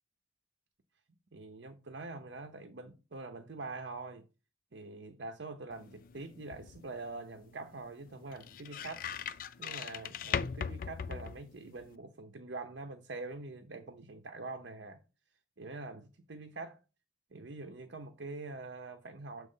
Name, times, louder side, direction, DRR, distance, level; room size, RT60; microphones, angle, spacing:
voice 1, 1.3-4.3 4.7-9.1 9.6-15.0 15.6-16.8 17.3-19.5, right 3 dB, 75° right, 0.7 m, -44 dB
sound 1, 5.7-12.0, left 7 dB, 50° left, 0.4 m, -40 dB
7.6 x 3.0 x 5.5 m
head